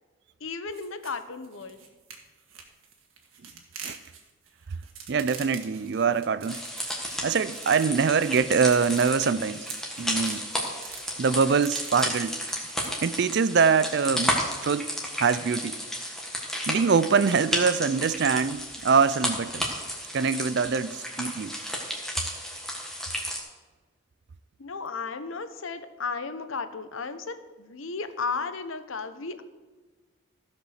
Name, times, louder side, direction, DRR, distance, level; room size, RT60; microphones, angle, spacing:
voice 1, 0.4-1.8 24.6-29.4, left 4 dB, 70° left, 0.8 m, -34 dB
sound 1, 0.7-12.9, right 6 dB, 80° right, 1.8 m, -45 dB
voice 2, 5.1-6.6 7.2-9.7 10.0-10.4 11.2-12.4 12.9-14.4 14.6-14.9 15.2-15.8 16.7-19.6 20.1-21.6, right 5 dB, 55° right, 0.4 m, -24 dB
sound 2, 6.5-23.4, equal, ahead, 1.5 m, -33 dB
15.0 x 5.3 x 6.5 m
head